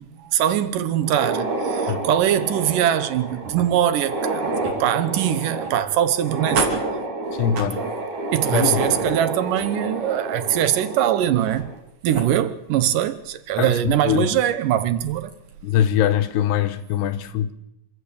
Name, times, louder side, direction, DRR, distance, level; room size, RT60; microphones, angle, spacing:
voice 1, 0.0-6.7 8.3-11.7 12.0-15.3, right 11 dB, 75° right, 2.0 m, -22 dB
sound 1, 1.0-11.8 12.1-12.2 13.0-13.1 13.6-13.7 15.1-15.3, right 2 dB, 45° right, 4.4 m, -28 dB
voice 2, 7.3-7.9 8.5-9.1 13.6-14.4 15.6-17.5, left 10 dB, 80° left, 3.0 m, -23 dB
27.0 x 14.0 x 8.6 m
omnidirectional pair, 5.0 m